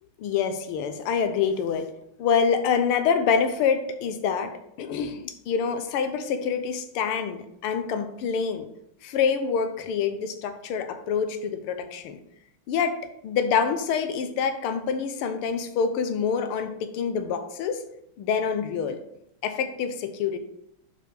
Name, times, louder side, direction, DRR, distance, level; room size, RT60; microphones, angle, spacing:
voice 1, 0.2-1.9 2.2-8.7 9.0-12.2 12.7-13.0 13.2-17.8 18.2-19.0 19.4-20.4, left 6 dB, 85° left, 9 dB, 1.7 m, -26 dB
6.2 x 5.4 x 4.9 m, 0.78 s
omnidirectional pair, 2.4 m